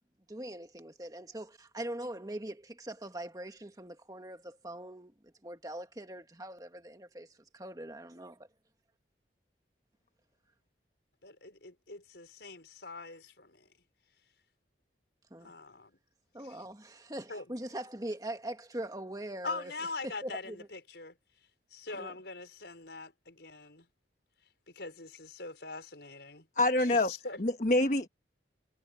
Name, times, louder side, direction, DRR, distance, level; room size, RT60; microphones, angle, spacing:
voice 1, 0.3-7.3 7.5-8.5 15.3-15.5 16.3-19.7 20.0-20.7 21.9-22.1, right 1 dB, 20° right, 1.9 m, -42 dB
voice 2, 11.2-13.7 15.4-15.9 17.3-17.4 19.4-21.1 21.7-23.9 24.7-26.5 26.8-27.4, left 3 dB, 70° left, 5.3 m, -43 dB
voice 3, 26.6-27.1 27.4-28.1, left 2 dB, 45° left, 1.2 m, -26 dB
head